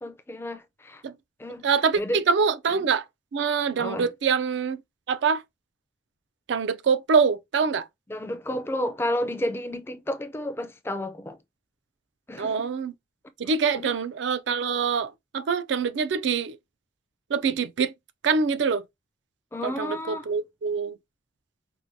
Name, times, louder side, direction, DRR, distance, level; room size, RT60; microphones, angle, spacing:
voice 1, 0.0-1.0 1.4-1.7 1.9-2.2 2.8-2.9 3.8-4.1 8.1-11.4 12.3-12.7 13.7-14.0 19.5-20.3, left 1 dB, 15° left, 0.4 m, -31 dB
voice 2, 1.6-3.0 3.3-4.8 5.1-5.4 6.5-7.8 12.4-12.9 13.4-16.6 17.3-17.9 18.2-18.8 19.6-20.9, right 5 dB, 70° right, 0.4 m, -25 dB
4.6 x 2.2 x 2.6 m
head